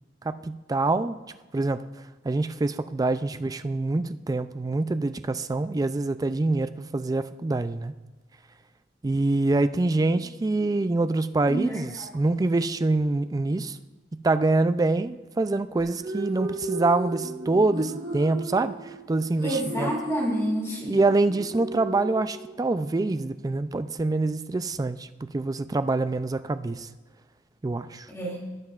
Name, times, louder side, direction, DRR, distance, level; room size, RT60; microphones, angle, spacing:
voice 1, 0.2-1.2 1.5-1.8 2.2-7.9 9.0-13.8 14.1-19.9 20.9-26.9 27.6-28.1, right 2 dB, 20° right, 12 dB, 0.3 m, -25 dB
voice 2, 11.4-12.1 19.4-21.0 28.1-28.4, right 1 dB, 15° left, -3 dB, 2.6 m, -29 dB
sound 1, 15.8-22.8, right 2 dB, 45° right, 1.5 m, -35 dB
17.5 x 7.6 x 2.4 m, 1.3 s
head